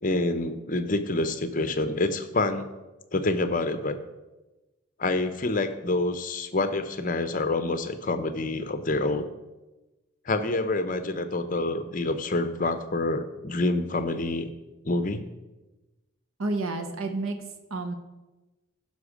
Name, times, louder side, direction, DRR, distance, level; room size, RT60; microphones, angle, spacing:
voice 1, 0.0-2.7 3.1-4.0 5.0-9.3 10.2-14.5 14.8-15.2, left 2 dB, 40° left, 10 dB, 0.7 m, -27 dB
voice 2, 16.4-17.9, right 2 dB, 80° right, 6 dB, 1.0 m, -30 dB
15.0 x 5.9 x 5.0 m, 1.1 s
head